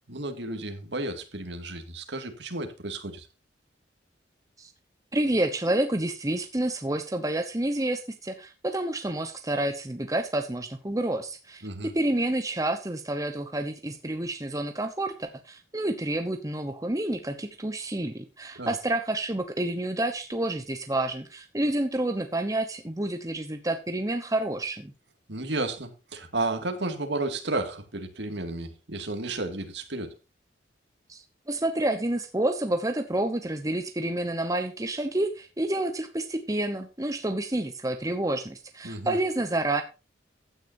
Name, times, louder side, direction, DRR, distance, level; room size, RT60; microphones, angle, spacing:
voice 1, 0.1-3.3 11.6-11.9 18.6-18.7 25.3-30.1 38.8-39.2, right 2 dB, 70° right, 2.2 m, -32 dB
voice 2, 5.1-11.6 11.9-24.9 31.1-39.8, right 1 dB, 20° right, 1.0 m, -29 dB
15.5 x 9.8 x 2.7 m
head